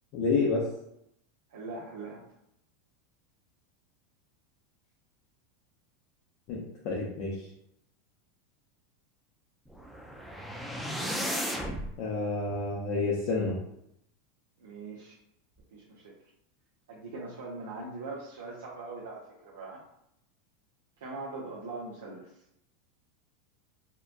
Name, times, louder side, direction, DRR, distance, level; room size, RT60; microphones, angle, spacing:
voice 1, 0.1-0.7 6.5-7.5 12.0-13.6, left 3 dB, 50° left, -3 dB, 0.6 m, -29 dB
voice 2, 1.5-2.2 14.6-15.2 15.7-16.2 16.9-19.8 21.0-22.4, right 3 dB, 90° right, -6 dB, 0.6 m, -41 dB
sound 1, 9.7-11.9, equal, ahead, 0.3 m, -34 dB
2.8 x 2.2 x 2.5 m, 0.77 s
supercardioid pair, 130°, 0 cm